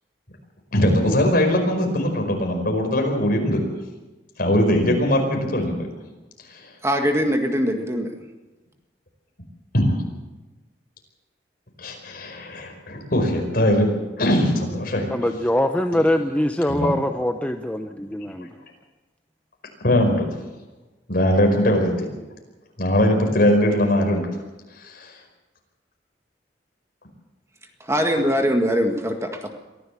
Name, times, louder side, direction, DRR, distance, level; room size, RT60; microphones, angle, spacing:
voice 1, 0.7-3.6 4.4-5.8 9.7-10.0 11.8-13.9 14.2-15.1 16.7-16.9 19.8-20.3 21.1-22.1 22.8-24.3 24.8-25.1, left 1 dB, 55° left, 3 dB, 5.1 m, -20 dB
voice 2, 6.8-8.1 27.8-29.5, equal, 15° right, 4 dB, 1.8 m, -22 dB
voice 3, 15.1-18.5, left 1 dB, 10° left, 5 dB, 0.8 m, -23 dB
23.5 x 15.0 x 7.4 m, 1.1 s
head